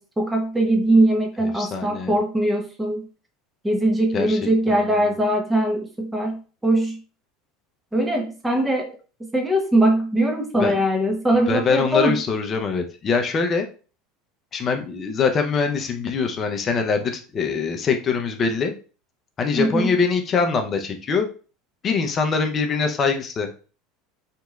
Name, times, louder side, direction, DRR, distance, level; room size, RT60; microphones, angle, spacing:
voice 1, 0.0-3.0 3.6-7.0 7.9-8.9 9.2-12.2 19.6-19.9, right 1 dB, 10° right, 2 dB, 0.8 m, -21 dB
voice 2, 1.6-2.1 4.1-5.1 10.6-10.7 11.5-13.6 14.5-18.7 19.4-21.3 21.8-23.5, left 5 dB, 35° left, 5 dB, 0.6 m, -23 dB
3.0 x 2.7 x 2.3 m, 0.37 s
hypercardioid pair, 75°, 0 cm